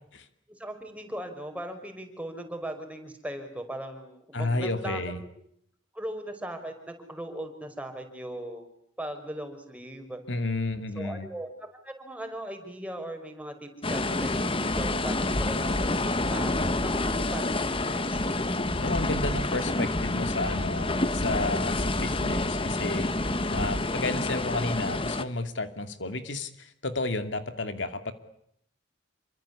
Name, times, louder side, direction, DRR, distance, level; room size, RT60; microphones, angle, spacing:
voice 1, 0.5-5.0 5.9-8.6 9.0-10.2 11.0-11.5 11.8-16.0 16.3-16.5 16.8-18.2, right 1 dB, 5° right, 5 dB, 5.5 m, -38 dB
voice 2, 4.3-5.2 10.3-11.3 18.6-28.1, left 2 dB, 75° left, 9 dB, 2.5 m, -32 dB
sound 1, 13.8-25.2, left 2 dB, 30° left, 1.6 m, -28 dB
28.5 x 25.0 x 8.5 m, 0.71 s
head